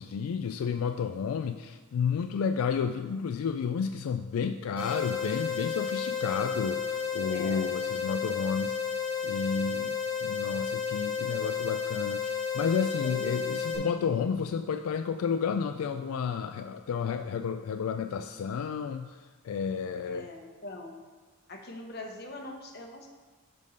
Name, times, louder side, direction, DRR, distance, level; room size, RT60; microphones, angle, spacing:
voice 1, 0.0-9.9 10.2-19.2 19.4-20.3, left 6 dB, 80° left, 8 dB, 0.3 m, -31 dB
sound 1, 4.8-13.8, left 6 dB, 10° right, 2.0 m, -32 dB
voice 2, 7.2-7.6 13.0-13.5 20.0-21.0 21.5-23.1, left 1 dB, 50° left, 2 dB, 1.0 m, -42 dB
5.4 x 5.3 x 6.6 m, 1.4 s
head